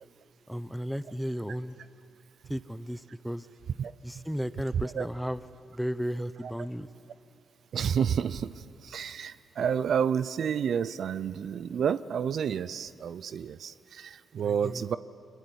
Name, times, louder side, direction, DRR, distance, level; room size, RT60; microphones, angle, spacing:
voice 1, 0.5-1.8 2.5-3.5 4.0-5.4 5.7-6.9 14.4-14.8, equal, ahead, 14 dB, 0.9 m, -34 dB
voice 2, 4.7-5.1 6.4-6.5 7.7-15.0, right 7 dB, 65° right, 16 dB, 0.5 m, -30 dB
24.0 x 21.0 x 8.0 m, 2.7 s
supercardioid pair, 55°, 0 cm